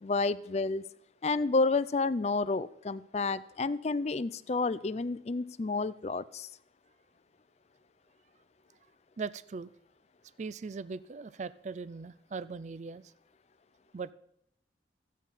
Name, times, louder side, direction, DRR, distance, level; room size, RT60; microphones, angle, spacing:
voice 1, 0.0-0.8 1.2-6.5, left 3 dB, 35° left, 16 dB, 0.4 m, -30 dB
voice 2, 9.2-9.7 10.4-13.1 13.9-14.1, right 4 dB, 40° right, 17 dB, 0.4 m, -39 dB
14.5 x 8.4 x 5.6 m, 0.75 s
head